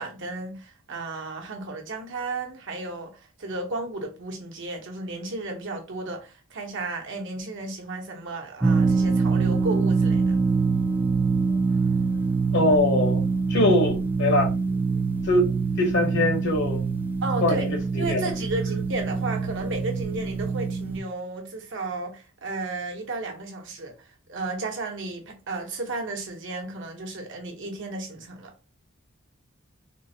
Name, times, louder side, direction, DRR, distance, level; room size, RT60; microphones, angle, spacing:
voice 1, 0.0-10.4 17.2-17.6 18.0-28.5, right 2 dB, 65° right, 0.9 m, -33 dB
sound 1, 8.6-21.0, right 4 dB, 10° right, 0.3 m, -24 dB
voice 2, 12.5-13.2 13.5-14.5 15.3-16.8 17.4-17.7 18.0-18.3, left 1 dB, 60° left, 0.8 m, -22 dB
3.7 x 2.1 x 2.7 m
head